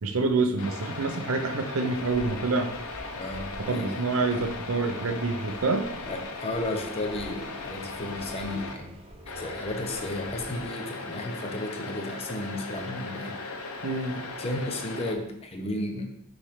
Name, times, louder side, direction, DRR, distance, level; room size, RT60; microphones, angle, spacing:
voice 1, 0.0-2.7 3.7-5.9 13.8-14.2, right 3 dB, 70° right, 7 dB, 0.7 m, -27 dB
sound 1, 0.6-8.7 9.3-15.2, left 3 dB, 85° left, 0.8 m, -38 dB
sound 2, 1.8-10.7, right 1 dB, 25° right, 1.0 m, -48 dB
voice 2, 3.2-4.0 6.0-9.0 9.3-13.4 14.1-16.1, left 1 dB, 25° left, 3 dB, 0.7 m, -33 dB
6.5 x 3.3 x 4.8 m, 0.78 s
head